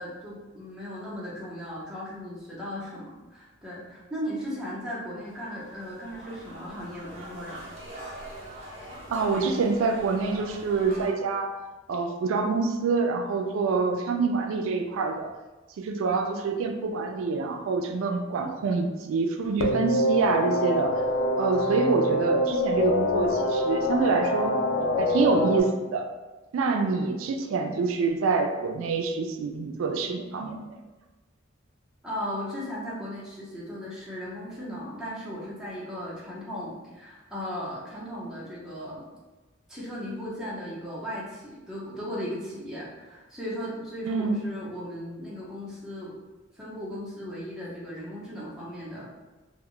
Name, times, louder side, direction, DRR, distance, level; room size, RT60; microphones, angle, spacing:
voice 1, 0.0-7.6 32.0-39.0 39.7-46.2 46.5-49.0, equal, 5° right, -7 dB, 0.7 m, -37 dB
sound 1, 5.2-11.1, right 1 dB, 35° right, 0.8 m, -43 dB
voice 2, 9.1-11.5 11.9-15.3 15.8-20.9 21.4-24.5 25.0-26.1 26.5-30.8 44.1-44.4, right 4 dB, 85° right, 4 dB, 0.3 m, -26 dB
sound 2, 19.6-25.6, left 1 dB, 80° left, 0.4 m, -25 dB
2.2 x 2.1 x 3.7 m, 1.1 s
head